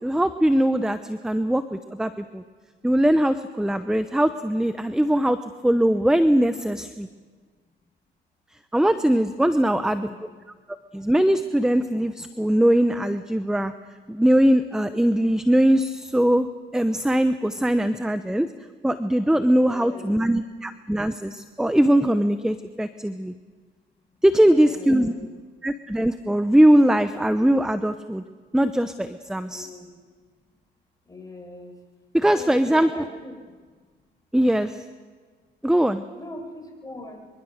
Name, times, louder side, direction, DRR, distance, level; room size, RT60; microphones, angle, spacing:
voice 1, 0.0-2.4 2.8-5.4 5.6-7.1 8.7-10.3 10.9-13.7 14.1-16.5 16.7-18.5 18.8-23.3 24.2-25.1 25.6-28.2 28.5-29.7 32.1-33.1 34.3-34.9 35.6-36.0, right 1 dB, 5° right, 10 dB, 0.9 m, -21 dB
voice 2, 9.6-10.3 19.6-20.3 24.4-25.3 29.5-29.9 31.1-31.7 32.3-33.4 36.2-37.3, left 2 dB, 20° left, 2 dB, 6.2 m, -40 dB
24.5 x 24.0 x 6.6 m, 1.5 s
cardioid pair, 90°, 20 cm